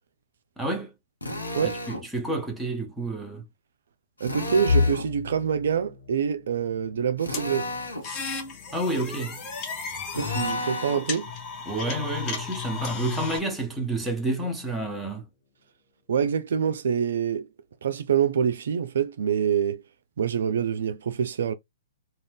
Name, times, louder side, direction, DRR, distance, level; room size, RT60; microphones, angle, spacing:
voice 1, 0.6-0.9 1.6-3.4 8.7-9.4 11.7-15.2, right 2 dB, 5° right, 0.9 m, -29 dB
Drill, 1.2-2.1 4.2-5.1 7.2-8.1 10.1-11.1, left 1 dB, 85° left, 0.8 m, -33 dB
voice 2, 4.2-7.7 10.1-11.3 16.1-17.5 17.8-19.8 20.2-21.5, right 7 dB, 65° right, 0.3 m, -26 dB
sound 1, 4.7-16.5 16.9-17.2 17.6-17.7 18.6-19.1, left 5 dB, 60° left, 0.8 m, -35 dB
sound 2, 7.3-13.4, left 5 dB, 30° left, 0.8 m, -34 dB
2.5 x 2.2 x 3.3 m
figure-of-eight pair, 115°, 0 cm